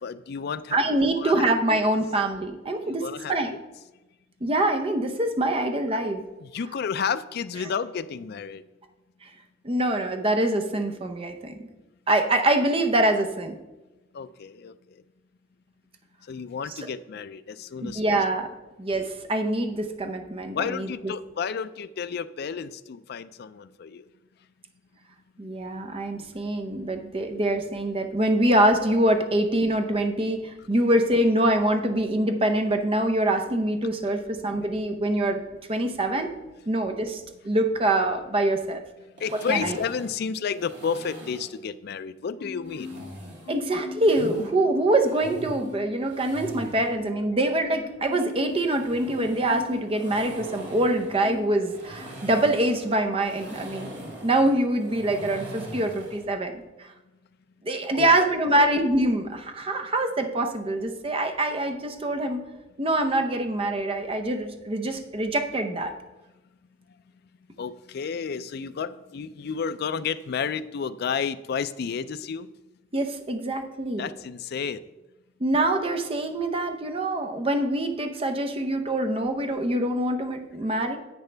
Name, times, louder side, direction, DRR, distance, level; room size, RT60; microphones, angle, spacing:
voice 1, 0.0-0.8 1.2-1.5 2.9-3.6 6.4-8.6 14.1-14.8 16.3-18.2 20.5-24.0 39.2-42.9 57.9-58.7 67.6-72.5 74.0-74.8, left 6 dB, 55° left, 13 dB, 0.4 m, -31 dB
voice 2, 0.7-3.5 4.4-6.2 9.6-11.7 12.1-13.6 17.8-18.5 18.8-21.1 25.4-35.4 35.7-36.3 36.7-38.8 39.5-39.8 43.5-56.9 57.6-62.4 62.8-65.9 72.9-74.1 75.4-81.0, right 1 dB, 30° right, 6 dB, 0.7 m, -25 dB
sound 1, 39.2-41.6 42.7-44.5 44.9-46.9 48.3-56.3, right 1 dB, 65° right, 2.5 m, -42 dB
Marimba xylophone, 42.4-43.2 43.4-44.9 45.2-45.9 46.3-50.5 50.8-51.6 52.0-52.2, left 5 dB, 90° left, 0.7 m, -42 dB
10.5 x 8.0 x 3.3 m, 1.1 s
head